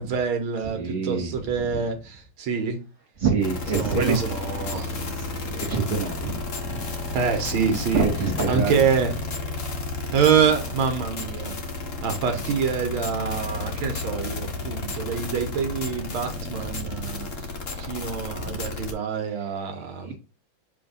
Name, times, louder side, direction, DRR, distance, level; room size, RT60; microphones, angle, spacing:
voice 1, 0.0-2.8 3.7-5.0 7.1-8.1 8.5-9.1 10.1-11.6 12.0-17.3 17.8-20.2, right 6 dB, 80° right, 1.8 m, -26 dB
voice 2, 0.8-1.3 1.7-1.8 3.2-4.2 4.6-6.9 7.9-8.8 18.4-18.5 19.8-20.2, right 5 dB, 25° right, 1.9 m, -27 dB
sound 1, 3.4-18.9, left 3 dB, 45° left, 1.3 m, -32 dB
7.2 x 3.4 x 3.9 m
omnidirectional pair, 2.2 m